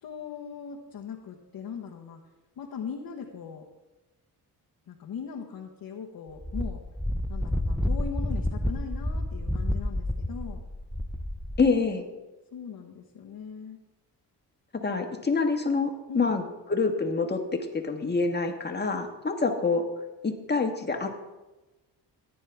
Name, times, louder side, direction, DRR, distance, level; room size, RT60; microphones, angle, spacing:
voice 1, 0.0-2.2 2.6-3.6 4.9-6.8 7.3-10.6 12.5-13.8 16.1-16.3, left 7 dB, 60° left, -1 dB, 1.3 m, -39 dB
Wind, 6.4-11.7, left 1 dB, 5° left, 0.5 m, -30 dB
voice 2, 11.6-12.0 14.8-16.4 16.7-17.4 17.7-19.8 20.2-21.2, left 4 dB, 25° left, 4 dB, 1.5 m, -26 dB
15.0 x 9.3 x 3.5 m, 1.1 s
cardioid pair, 85°, 39 cm